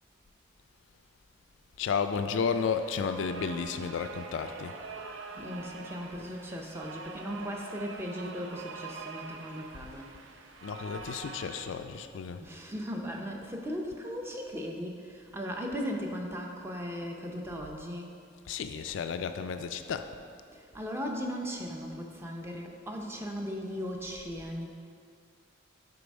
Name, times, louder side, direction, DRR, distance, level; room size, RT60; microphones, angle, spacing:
voice 1, 1.8-4.7 10.6-12.4 18.5-20.1, left 6 dB, 65° left, 8 dB, 0.3 m, -32 dB
sound 1, 2.3-11.7, right 4 dB, 65° right, 0.5 m, -45 dB
voice 2, 5.4-10.1 12.4-18.2 20.5-24.7, equal, 10° right, 1 dB, 0.5 m, -37 dB
6.8 x 4.1 x 5.2 m, 2.3 s
head